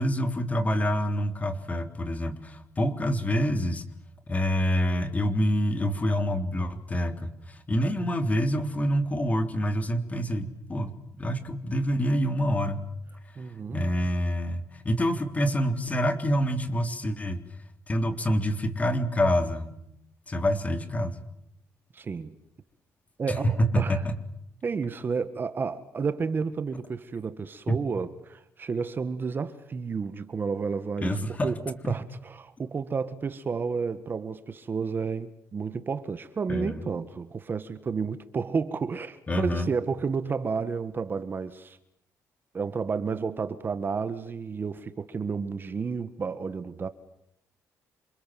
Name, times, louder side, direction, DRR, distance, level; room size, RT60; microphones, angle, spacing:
voice 1, 0.0-3.8 4.3-10.9 11.2-12.9 13.7-17.4 17.9-19.7 20.3-21.2 23.3-24.2 27.7-27.8 31.0-31.5 31.8-31.9 36.5-36.8 39.3-39.7, equal, 25° left, 3.4 m, -27 dB
voice 2, 13.4-13.8 21.9-22.4 23.2-24.0 24.6-41.8 42.5-46.9, right 5 dB, 35° right, 1.7 m, -31 dB
28.0 x 28.0 x 7.7 m
cardioid pair, 120°, 6 cm